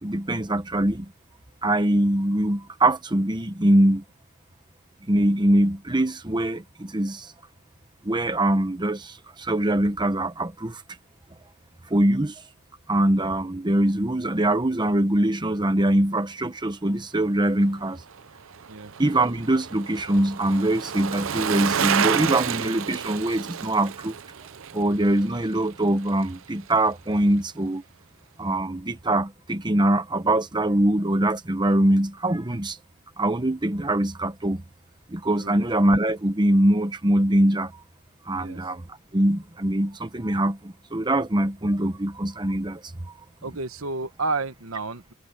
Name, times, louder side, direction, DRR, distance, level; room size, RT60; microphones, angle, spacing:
voice 1, 0.0-1.1 1.6-4.0 5.1-7.3 8.0-10.8 11.9-12.3 12.9-18.0 19.0-24.1 24.7-27.8 28.4-32.8 33.2-34.6 35.1-37.7 38.3-38.8 39.1-42.8, right 1 dB, 20° right, 1.1 m, -23 dB
Bicycle, 18.0-26.4 26.7-26.8, right 8 dB, 70° right, 0.7 m, -30 dB
voice 2, 43.4-45.1, right 3 dB, 85° right, 1.3 m, -31 dB
head